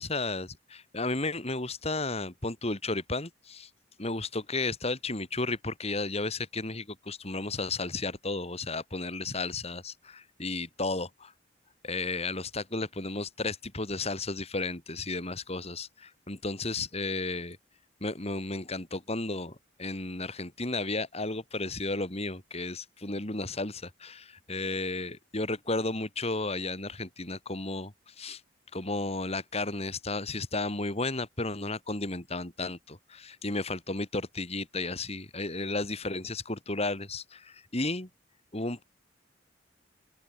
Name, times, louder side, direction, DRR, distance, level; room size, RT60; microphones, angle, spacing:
voice 1, 0.0-3.7 4.0-11.3 11.8-17.6 18.0-28.4 28.7-38.1 38.5-38.8, left 2 dB, 35° left, 3.2 m, -33 dB
open air
head